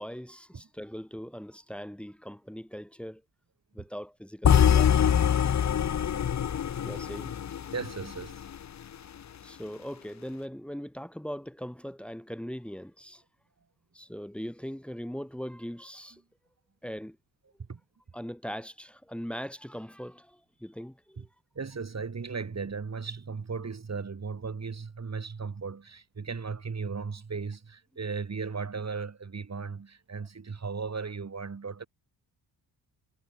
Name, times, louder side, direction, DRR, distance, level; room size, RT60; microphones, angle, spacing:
voice 1, 0.0-3.2 3.7-5.1 6.8-7.3 9.4-13.2 13.9-16.2 16.8-17.2 18.1-21.3, equal, 5° left, 5.9 m, -40 dB
sound 1, 4.4-8.6, left 9 dB, 40° left, 0.8 m, -24 dB
voice 2, 7.7-8.5 17.7-17.8 21.2-21.3 21.6-31.9, right 5 dB, 40° right, 7.3 m, -36 dB
cardioid pair, 80°, 41 cm